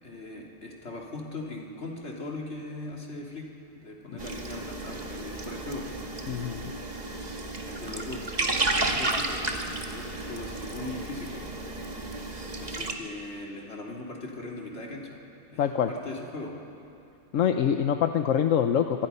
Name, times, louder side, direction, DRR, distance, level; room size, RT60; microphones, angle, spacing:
voice 1, 0.0-5.9 7.6-11.4 12.6-15.2 15.5-16.6, left 2 dB, 60° left, -1 dB, 3.1 m, -39 dB
sound 1, 4.2-12.9, right 2 dB, 35° right, 1.6 m, -32 dB
voice 2, 6.3-6.7 15.6-15.9 17.3-19.1, left 8 dB, 85° left, 7 dB, 1.2 m, -25 dB
25.5 x 23.0 x 5.6 m, 2.7 s
omnidirectional pair, 1.3 m